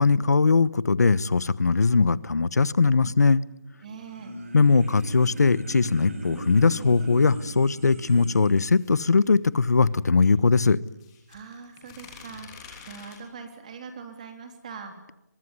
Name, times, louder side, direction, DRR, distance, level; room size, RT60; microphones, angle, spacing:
voice 1, 0.0-3.4 4.5-10.8, left 4 dB, 70° left, 19 dB, 1.2 m, -20 dB
voice 2, 3.8-4.4 11.3-15.0, right 5 dB, 25° right, 6 dB, 3.3 m, -42 dB
sound 1, 3.8-8.7, right 1 dB, 50° right, 5.8 m, -38 dB
sound 2, 5.7-7.3 8.2-10.3 10.8-13.2, left 6 dB, 15° left, 3.3 m, -48 dB
23.5 x 23.5 x 9.8 m, 0.90 s
hypercardioid pair, 175°, 9 cm